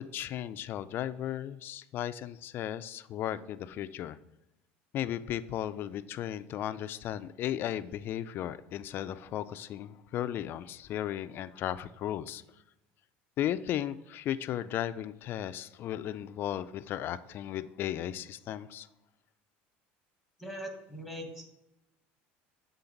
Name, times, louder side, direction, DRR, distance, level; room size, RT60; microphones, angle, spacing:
voice 1, 0.0-4.2 4.9-12.4 13.4-18.9, left 11 dB, 50° left, 13 dB, 0.3 m, -35 dB
voice 2, 20.4-21.4, equal, 5° right, 2 dB, 1.3 m, -41 dB
7.1 x 3.8 x 3.9 m, 0.91 s
supercardioid pair, 115°, 5 cm